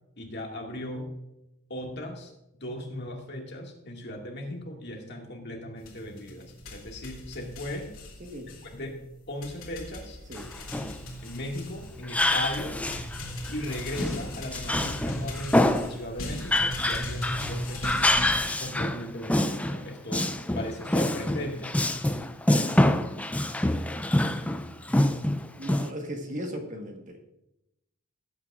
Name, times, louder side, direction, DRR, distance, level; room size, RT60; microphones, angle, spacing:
voice 1, 0.2-1.1 1.7-2.3 2.6-7.9 8.5-9.0 9.3-10.2 10.6-11.0 11.2-12.8 13.5-18.3 18.6-21.8, left 1 dB, 50° left, 1 dB, 2.0 m, -37 dB
sound 1, 5.8-18.4, left 1 dB, 65° left, 2.8 m, -38 dB
Male speech man speaking, 10.4-11.0 12.0-13.2 13.5-16.0 16.4-19.9 20.1-25.9, left 1 dB, 5° left, 0.4 m, -26 dB
voice 2, 25.5-27.3, equal, 35° right, 3 dB, 1.4 m, -37 dB
18.0 x 8.7 x 2.5 m, 0.87 s
head